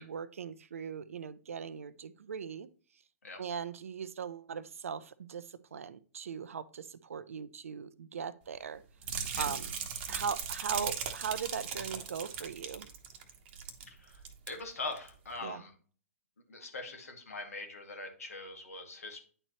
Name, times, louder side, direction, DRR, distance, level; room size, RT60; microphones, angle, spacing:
voice 1, 0.0-2.7 3.4-8.8 9.4-9.7 10.1-12.9 15.4-15.6, right 7 dB, 65° right, 16 dB, 0.6 m, -39 dB
sound 1, 9.0-13.9 14.1-14.5 15.0-15.1, right 7 dB, 40° right, 1.1 m, -38 dB
voice 2, 14.5-15.7 16.5-19.2, left 3 dB, 75° left, 3 dB, 2.1 m, -42 dB
9.8 x 4.4 x 3.0 m, 0.42 s
figure-of-eight pair, 120°, 8 cm